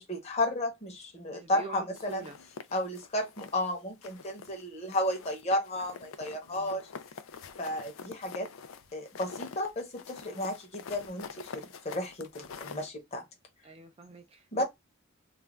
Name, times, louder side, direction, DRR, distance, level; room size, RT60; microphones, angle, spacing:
voice 1, 0.0-2.2 2.7-6.9 7.6-8.5 8.9-13.2 14.5-14.6, left 1 dB, 30° left, 0.8 m, -33 dB
voice 2, 1.3-2.4 6.5-6.8 13.6-14.6, right 4 dB, 30° right, 0.3 m, -45 dB
sound 1, 2.0-3.7 4.0-4.6 4.9-12.9, left 5 dB, 80° left, 0.4 m, -46 dB
2.5 x 2.2 x 3.1 m
head